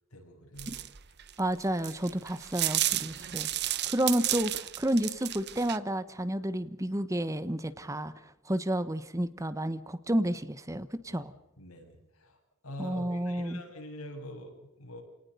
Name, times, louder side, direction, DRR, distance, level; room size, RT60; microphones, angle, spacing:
voice 1, 0.1-0.8 11.2-11.3 11.6-15.0, left 1 dB, 85° left, 2 dB, 7.8 m, -45 dB
sound 1, 0.6-5.8, right 14 dB, 50° right, 1.0 m, -32 dB
voice 2, 1.4-8.1 8.4-11.3 12.8-13.6, right 1 dB, 15° right, 14 dB, 1.0 m, -31 dB
29.0 x 18.5 x 6.8 m, 0.87 s
head